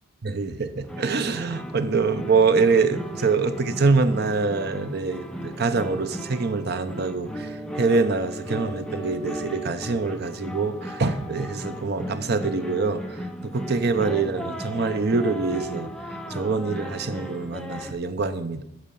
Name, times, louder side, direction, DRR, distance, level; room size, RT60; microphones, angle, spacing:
voice 1, 0.2-15.9 16.3-18.6, right 4 dB, 55° right, 10 dB, 0.7 m, -25 dB
sound 1, 0.8-17.9, right 1 dB, 5° left, 0.8 m, -36 dB
13.0 x 4.4 x 7.0 m, 0.84 s
head